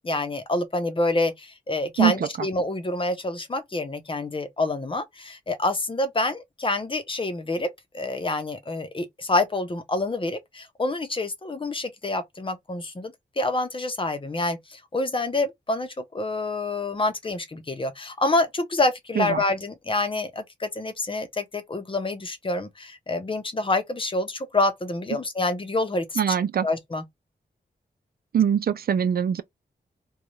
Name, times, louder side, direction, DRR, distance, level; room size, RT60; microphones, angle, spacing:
voice 1, 0.0-7.7 7.9-26.4 26.6-27.0, left 2 dB, 30° left, 0.7 m, -27 dB
voice 2, 26.2-26.7 28.3-29.4, right 8 dB, 65° right, 0.4 m, -22 dB
2.6 x 2.3 x 2.9 m
wide cardioid pair, 100°, 17 cm